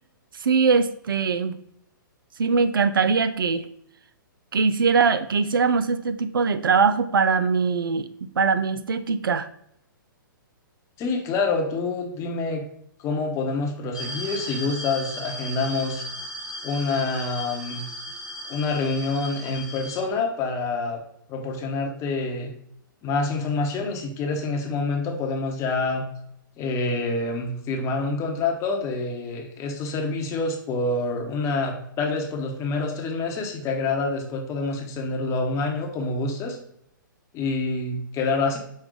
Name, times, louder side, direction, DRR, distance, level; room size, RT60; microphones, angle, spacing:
voice 1, 0.4-1.5 2.4-3.6 4.5-9.5, right 5 dB, 80° right, 11 dB, 0.4 m, -22 dB
voice 2, 11.0-12.6 13.0-16.0 16.6-17.8 18.5-21.0 21.3-22.5 23.0-26.1 26.6-36.6 37.3-38.6, left 3 dB, 25° left, 2 dB, 0.9 m, -27 dB
sound 1, 13.9-20.0, equal, 5° right, 0.7 m, -36 dB
5.2 x 2.3 x 3.7 m, 0.71 s
hypercardioid pair, 125°, 11 cm